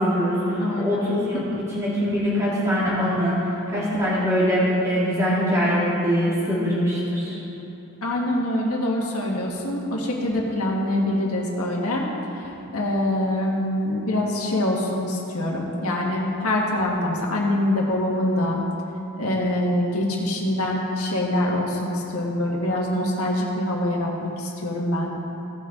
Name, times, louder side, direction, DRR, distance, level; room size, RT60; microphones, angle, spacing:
voice 1, 0.0-1.5 1.7-7.4, equal, 15° right, -9 dB, 2.4 m, -23 dB
voice 2, 0.6-1.1 1.4-1.6 8.0-12.1 12.4-18.6 19.2-25.1, left 1 dB, 80° left, -2 dB, 1.8 m, -24 dB
17.5 x 6.1 x 3.9 m, 3.0 s
head